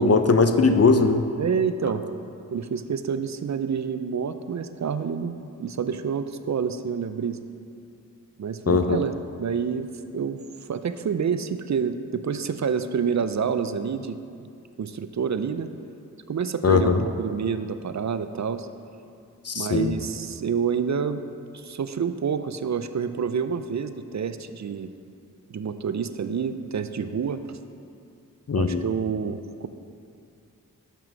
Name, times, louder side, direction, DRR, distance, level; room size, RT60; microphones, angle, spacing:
voice 1, 0.0-1.3 8.7-9.0 16.6-17.0 19.5-19.9 28.5-28.8, left 4 dB, 45° left, 7 dB, 0.6 m, -19 dB
voice 2, 1.4-2.0 2.5-7.4 8.4-14.5 14.8-15.7 16.3-18.7 19.5-21.2 21.5-24.9 25.5-27.6 28.5-29.7, right 6 dB, 55° right, 10 dB, 0.5 m, -28 dB
6.9 x 6.1 x 6.1 m, 2.4 s
cardioid pair, 45°, 34 cm